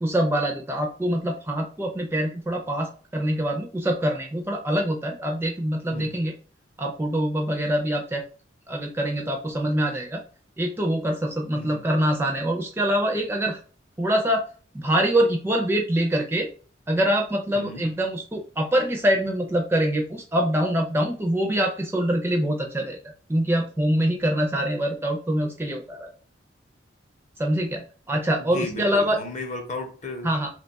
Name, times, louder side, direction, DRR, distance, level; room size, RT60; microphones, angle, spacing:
voice 1, 0.0-6.3 6.8-8.2 8.7-10.2 10.6-13.6 14.0-14.4 14.7-16.5 16.9-23.0 23.3-26.1 27.4-29.2 30.2-30.5, right 1 dB, 10° right, 1 dB, 0.4 m, -24 dB
voice 2, 11.5-11.9 17.5-17.9 28.4-30.3, left 2 dB, 40° left, 4 dB, 0.6 m, -35 dB
2.8 x 2.2 x 3.9 m, 0.40 s
head